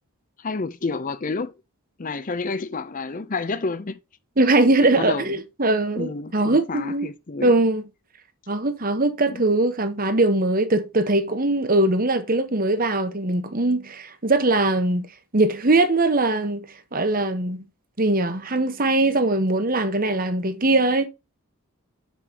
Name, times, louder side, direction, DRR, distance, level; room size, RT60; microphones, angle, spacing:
voice 1, 0.4-1.5 2.0-4.0 4.8-5.3 6.0-7.5 9.3-9.4, left 3 dB, 35° left, 0.6 m, -29 dB
voice 2, 4.4-7.1 7.4-7.8 8.5-15.1 15.3-16.7 16.9-17.7 18.0-21.1, right 2 dB, 40° right, 1.2 m, -21 dB
7.3 x 6.6 x 2.9 m
head